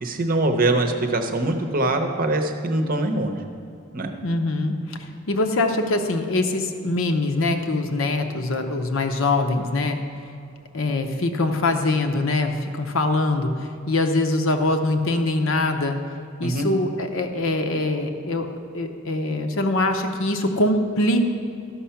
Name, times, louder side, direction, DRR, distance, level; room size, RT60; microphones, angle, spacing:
voice 1, 0.0-3.4 3.9-4.1 16.4-16.7, right 2 dB, 40° right, 5 dB, 0.8 m, -23 dB
voice 2, 4.2-10.0 10.7-16.0 16.4-18.5 18.7-21.2, left 2 dB, 60° left, 6 dB, 0.8 m, -23 dB
13.0 x 5.6 x 5.7 m, 2.6 s
head